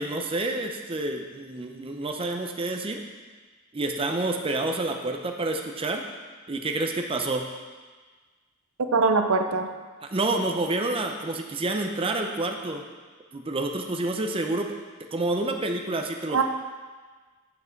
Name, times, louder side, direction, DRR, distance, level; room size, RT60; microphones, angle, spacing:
voice 1, 0.0-3.0 3.7-6.0 6.5-7.5 10.0-12.8 13.3-14.7 15.1-16.4, right 2 dB, 25° right, 4 dB, 0.6 m, -28 dB
voice 2, 8.8-9.7 16.3-16.4, right 4 dB, 90° right, 6 dB, 0.6 m, -22 dB
8.2 x 6.0 x 4.5 m, 1.4 s
head